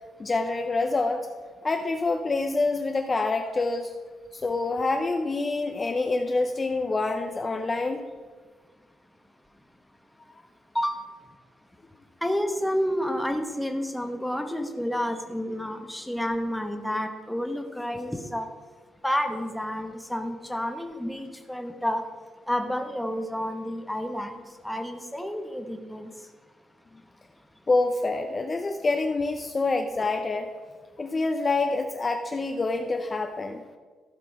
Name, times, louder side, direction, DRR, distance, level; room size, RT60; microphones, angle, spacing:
voice 1, 0.2-1.3 1.6-3.9 4.3-8.0 27.7-30.5 31.0-33.6, left 3 dB, 25° left, 4 dB, 0.6 m, -26 dB
voice 2, 12.2-18.5 19.0-22.0 22.5-26.1, equal, 5° left, 5 dB, 1.0 m, -30 dB
15.0 x 6.0 x 4.7 m, 1.5 s
cardioid pair, 140°, 0 cm